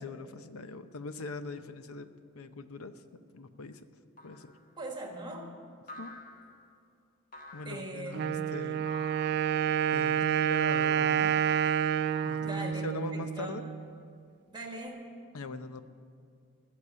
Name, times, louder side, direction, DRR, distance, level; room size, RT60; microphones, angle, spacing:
voice 1, 0.0-2.1 2.3-3.0 3.3-3.9 4.2-4.5 6.0-6.1 7.5-8.9 9.9-11.4 12.2-13.7 15.3-15.8, left 3 dB, 75° left, 11 dB, 0.7 m, -41 dB
sound 1, 4.2-4.6 5.9-6.7 7.3-7.9 8.8-9.4 10.6-11.2 12.1-12.9, left 2 dB, 40° left, 1.6 m, -49 dB
voice 2, 4.8-5.6 7.6-8.4 12.4-13.6 14.5-15.1, right 1 dB, 20° right, 2 dB, 1.6 m, -40 dB
Wind instrument woodwind instrument, 8.1-13.9, right 9 dB, 50° right, 0.3 m, -29 dB
15.5 x 6.6 x 9.7 m, 2.3 s
head